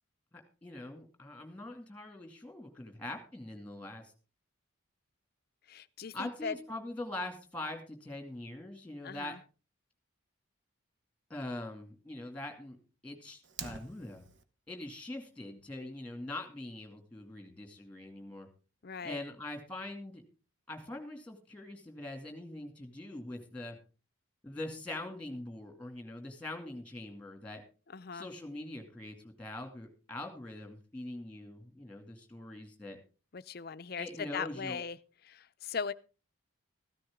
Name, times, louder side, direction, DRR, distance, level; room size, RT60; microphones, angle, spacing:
voice 1, 0.3-4.1 6.1-9.4 11.3-12.8 13.0-14.2 14.7-18.5 19.0-20.2 20.7-23.8 24.4-27.6 28.1-33.0 34.0-34.8, left 1 dB, 5° left, 2.4 m, -43 dB
voice 2, 5.7-6.5 9.0-9.4 18.8-19.2 27.9-28.3 33.3-35.0 35.3-35.9, left 5 dB, 45° left, 0.5 m, -39 dB
Fire, 13.4-14.4, right 6 dB, 60° right, 1.0 m, -45 dB
14.5 x 13.0 x 3.7 m
head